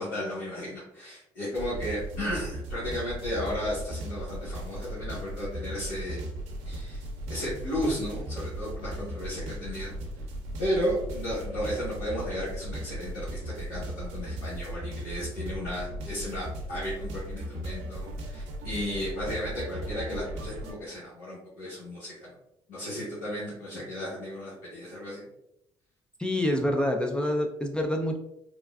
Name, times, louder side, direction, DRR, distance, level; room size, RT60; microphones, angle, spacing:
voice 1, 0.0-6.2 6.6-7.0 7.3-9.9 10.6-22.3 22.7-25.2, equal, 85° left, -10 dB, 1.2 m, -34 dB
sound 1, 1.5-20.7, right 1 dB, 75° right, 0.6 m, -37 dB
voice 2, 26.2-28.2, left 1 dB, 10° left, 2 dB, 0.4 m, -27 dB
3.5 x 2.2 x 2.3 m, 0.82 s
hypercardioid pair, 60°, 12 cm